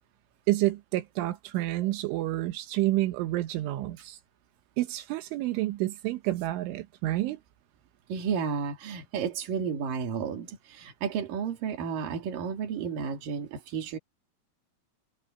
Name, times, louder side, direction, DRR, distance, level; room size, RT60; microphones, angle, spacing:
voice 1, 0.5-4.2 4.8-7.4, right 16 dB, 85° right, 3.7 m, -29 dB
voice 2, 8.1-14.0, right 6 dB, 50° right, 4.0 m, -32 dB
omnidirectional pair, 5.4 m